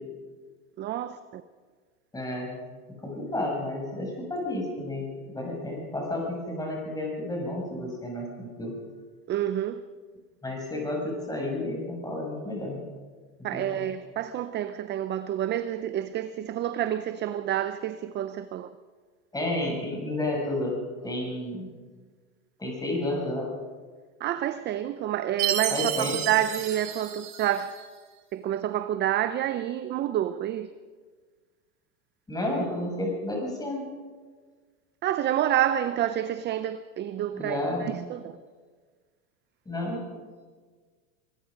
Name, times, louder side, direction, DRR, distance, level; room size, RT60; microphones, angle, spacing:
voice 1, 0.8-1.4 9.3-9.8 13.4-18.7 24.2-27.7 28.3-30.7 35.0-38.3, right 11 dB, 25° right, 0.6 m, -28 dB
voice 2, 2.1-2.5 3.0-8.7 10.4-12.8 13.4-13.8 19.3-20.8 21.0-21.7 22.6-23.5 25.7-26.2 32.3-33.9 37.3-37.9 39.7-40.0, left 1 dB, 10° left, 6.9 m, -31 dB
Chime, 25.4-27.8, right 11 dB, 90° right, 3.5 m, -31 dB
24.0 x 21.0 x 5.2 m
supercardioid pair, 130°, 43 cm